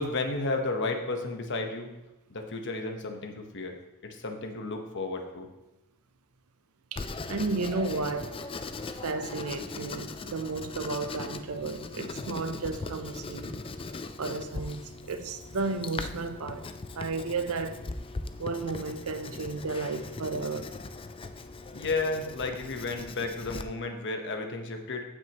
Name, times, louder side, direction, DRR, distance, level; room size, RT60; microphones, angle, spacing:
voice 1, 0.0-1.9 2.3-3.7 4.0-5.5 21.7-25.0, left 3 dB, 55° left, 1.1 m, -32 dB
voice 2, 6.9-8.4 9.0-13.6 14.2-16.7 17.0-17.8 18.4-20.7, right 3 dB, 70° right, 0.6 m, -33 dB
Writing, 7.0-23.6, left 3 dB, 25° left, 0.4 m, -40 dB
14.5 x 6.2 x 3.0 m
head